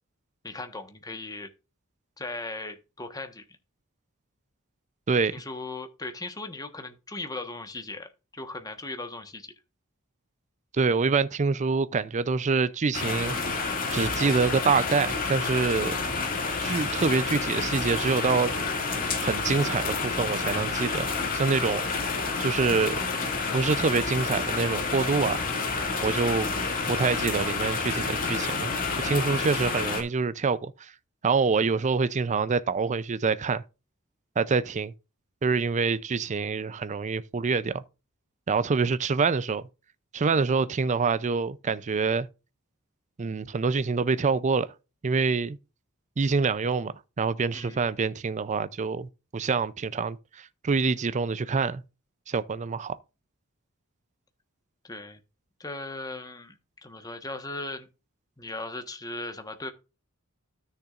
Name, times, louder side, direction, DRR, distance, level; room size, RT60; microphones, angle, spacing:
voice 1, 0.4-1.5 2.2-3.4 5.3-8.1 8.3-9.5 47.5-47.8 54.8-55.2 55.6-57.9 58.4-59.7, left 2 dB, 15° left, 1.2 m, -38 dB
voice 2, 5.1-5.4 10.7-13.3 13.9-15.9 16.6-18.5 19.2-21.1 21.3-21.8 22.4-23.1 23.5-25.4 26.0-26.5 26.9-28.7 29.0-30.9 31.2-33.6 34.4-34.9 35.4-37.8 38.5-39.7 40.1-42.3 43.2-44.7 45.0-45.6 46.2-51.8 52.3-53.0, right 4 dB, 35° right, 0.4 m, -26 dB
sound 1, 12.9-30.0, left 4 dB, 40° left, 2.2 m, -29 dB
13.0 x 6.7 x 2.4 m
head